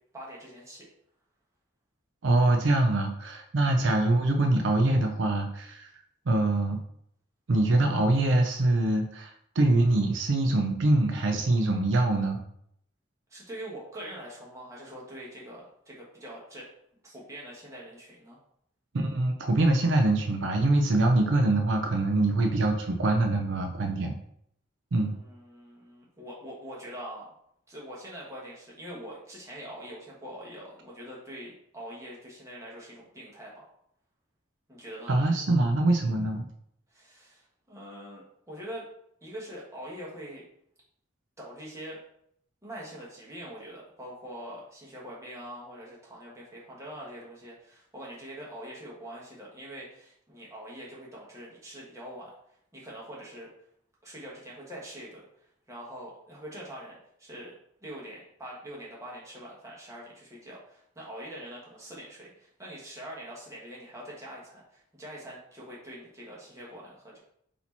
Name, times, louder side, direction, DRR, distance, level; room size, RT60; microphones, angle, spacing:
voice 1, 0.1-0.9 13.3-16.7 17.0-18.4 25.0-27.3 27.7-33.7 34.7-35.1 36.9-38.9 39.2-40.4 41.4-42.0 42.6-52.3 52.7-53.5 54.0-57.5 57.8-67.2, equal, 15° right, -5 dB, 1.1 m, -44 dB
voice 2, 2.2-5.9 6.3-6.8 7.5-12.4 18.9-24.1 24.9-25.1 35.1-36.4, right 2 dB, 70° right, 3 dB, 0.5 m, -24 dB
4.3 x 2.8 x 4.2 m, 0.71 s
head